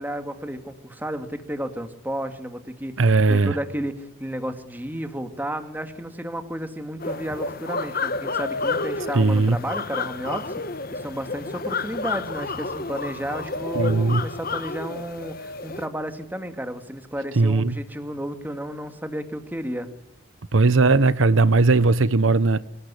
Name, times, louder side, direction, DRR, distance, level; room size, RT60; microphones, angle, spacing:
voice 1, 0.0-10.6 10.9-19.9, equal, 10° right, 2.0 m, -32 dB
voice 2, 3.0-3.6 9.1-9.6 13.7-14.2 17.4-17.8 20.5-22.6, right 3 dB, 75° right, 0.8 m, -18 dB
sound 1, 7.0-15.9, left 3 dB, 45° left, 1.3 m, -30 dB
25.0 x 18.5 x 9.8 m
head